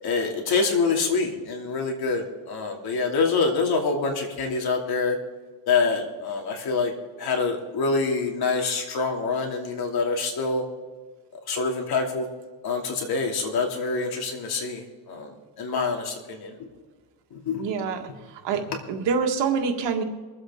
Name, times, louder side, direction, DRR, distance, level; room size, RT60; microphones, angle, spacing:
voice 1, 0.0-5.2 5.7-10.6 11.3-12.3 12.6-16.6 17.3-17.6, left 4 dB, 60° left, 2 dB, 2.8 m, -26 dB
voice 2, 17.6-18.0 18.3-20.0, right 5 dB, 85° right, 4 dB, 1.8 m, -26 dB
23.5 x 8.0 x 3.7 m, 1.4 s
cardioid pair, 120°, 42 cm